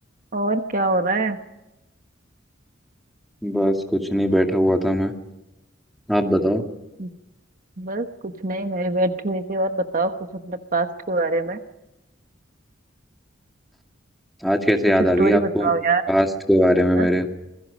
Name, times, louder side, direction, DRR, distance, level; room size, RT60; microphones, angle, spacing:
voice 1, 0.3-1.4 7.0-7.1 7.8-11.6 15.2-16.0 16.9-17.1, right 2 dB, 40° right, 7 dB, 1.2 m, -24 dB
voice 2, 3.4-5.1 6.1-6.6 14.4-15.7 16.1-17.3, equal, ahead, 3 dB, 2.2 m, -20 dB
26.5 x 22.0 x 5.2 m, 0.97 s
head